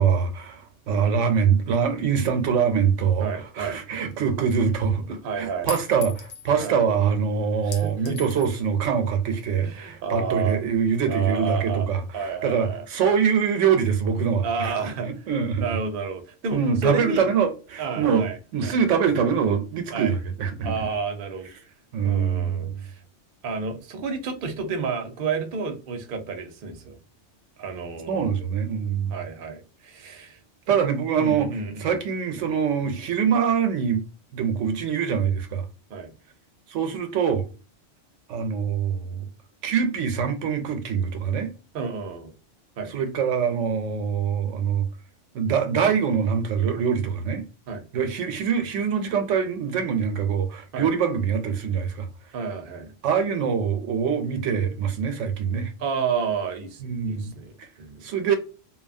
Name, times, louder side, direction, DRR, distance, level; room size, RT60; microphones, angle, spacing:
voice 1, 0.0-3.3 3.6-14.7 15.1-15.8 16.5-18.3 18.5-20.8 21.9-22.8 28.1-29.1 30.7-31.5 31.8-34.0 34.3-35.7 36.7-37.5 38.3-39.3 39.6-41.5 42.9-44.9 45.3-47.5 47.9-52.1 53.0-55.7 56.8-57.3 57.6-57.7 58.0-58.4, right 7 dB, 85° right, 0.9 m, -24 dB
voice 2, 3.2-3.8 5.1-5.7 6.6-6.8 7.6-8.1 9.6-10.6 11.1-11.9 12.1-13.2 14.4-15.1 15.6-17.3 17.8-18.8 19.9-20.2 20.6-21.7 22.0-23.0 23.4-27.0 27.6-28.4 29.1-30.4 31.2-32.0 32.8-33.0 35.9-36.1 41.7-42.3 42.8-42.9 47.7-47.8 50.7-50.9 52.3-52.9 55.8-58.1, right 5 dB, 55° right, 0.7 m, -31 dB
Chink clink, 5.7-6.5 7.7-8.6, left 6 dB, 60° left, 0.8 m, -38 dB
2.7 x 2.3 x 2.5 m
omnidirectional pair, 1.3 m